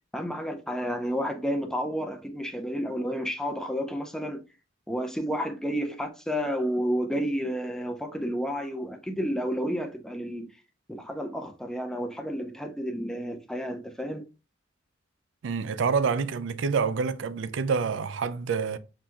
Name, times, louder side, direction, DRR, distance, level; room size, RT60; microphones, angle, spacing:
voice 1, 0.1-4.4 4.9-10.5 10.9-14.3, equal, 5° left, 0.4 m, -31 dB
voice 2, 15.4-18.8, right 5 dB, 75° right, 0.4 m, -27 dB
5.7 x 2.6 x 2.3 m
head